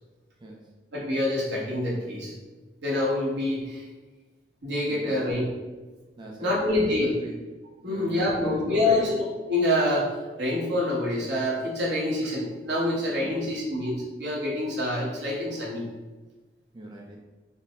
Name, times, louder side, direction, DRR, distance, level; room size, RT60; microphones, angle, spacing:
voice 1, 0.4-0.8 4.9-5.4 6.2-7.4 7.9-9.2 13.2-13.5 16.7-17.2, equal, 25° right, 0 dB, 0.3 m, -40 dB
voice 2, 0.9-2.3 2.8-3.9 4.6-5.5 6.4-7.1 7.8-9.2 9.5-15.8, left 1 dB, 85° right, -4 dB, 1.1 m, -26 dB
4.0 x 2.0 x 3.5 m, 1.3 s
head